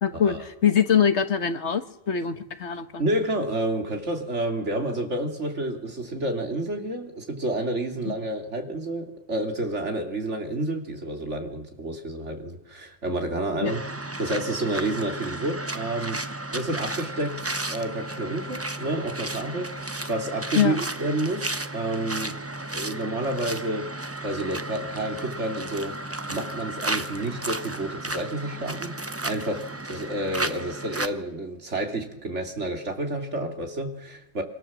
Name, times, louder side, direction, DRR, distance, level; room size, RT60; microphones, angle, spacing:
voice 1, 0.0-3.0 8.1-8.2 13.6-13.7 20.5-20.8, left 8 dB, 75° left, 10 dB, 1.7 m, -23 dB
voice 2, 3.0-13.8 14.2-22.4 22.7-23.9 24.2-28.9 29.2-34.4, right 1 dB, 85° right, 3 dB, 3.3 m, -30 dB
sound 1, 13.6-31.1, right 2 dB, 15° right, 0.8 m, -33 dB
25.5 x 25.0 x 7.4 m, 0.90 s
omnidirectional pair, 1.2 m